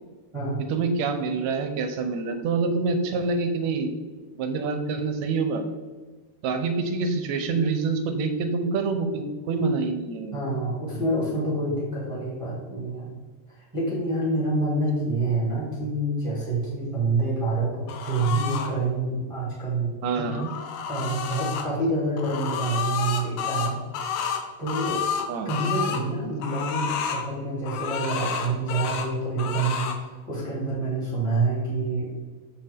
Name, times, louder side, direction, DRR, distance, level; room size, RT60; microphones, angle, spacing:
voice 1, 0.7-3.9 4.4-5.6 6.4-10.3 20.0-20.5 25.3-25.5, right 4 dB, 75° right, 7 dB, 2.0 m, -26 dB
voice 2, 10.3-13.1 13.6-20.3 20.9-23.8 24.6-25.0 25.4-29.9 30.3-32.1, right 2 dB, 10° right, -8 dB, 2.4 m, -27 dB
sound 1, 17.9-18.7 20.1-21.7 22.2-26.0 26.4-27.3 27.6-29.1 29.4-30.0, left 7 dB, 80° left, 2.1 m, -30 dB
8.1 x 6.8 x 3.6 m, 1.4 s
omnidirectional pair, 3.3 m